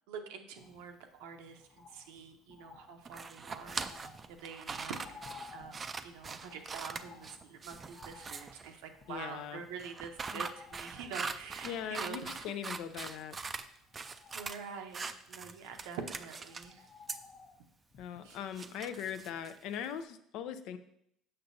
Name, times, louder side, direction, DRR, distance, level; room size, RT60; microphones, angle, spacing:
voice 1, 0.1-4.9 5.5-12.6 14.3-16.9 18.2-18.4, right 6 dB, 85° right, 5 dB, 0.7 m, -46 dB
Bird, 0.6-19.7 20.0-20.1, left 5 dB, 45° left, 0.8 m, -57 dB
sound 1, 3.0-8.7 9.8-13.7 13.9-14.6 14.9-16.7 17.1-17.2 18.3-19.8, right 4 dB, 30° right, 0.4 m, -42 dB
voice 2, 9.1-9.7 10.3-10.4 11.6-13.4 18.0-20.8, left 9 dB, 70° left, 11 dB, 0.5 m, -40 dB
6.6 x 5.7 x 2.6 m, 0.74 s
supercardioid pair, 100°, 0 cm